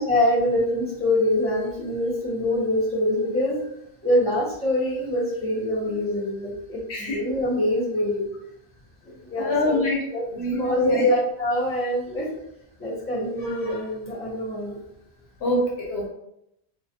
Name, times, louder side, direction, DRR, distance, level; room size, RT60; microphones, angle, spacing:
voice 1, 0.0-3.7 4.0-8.3 9.0-9.8 10.1-10.2 10.5-12.3 12.8-14.8, left 1 dB, 15° left, -9 dB, 0.8 m, -25 dB
voice 2, 9.4-10.0 10.3-11.1 15.4-16.1, left 2 dB, 75° left, -2 dB, 0.9 m, -23 dB
2.3 x 2.3 x 2.6 m, 0.79 s
omnidirectional pair, 1.1 m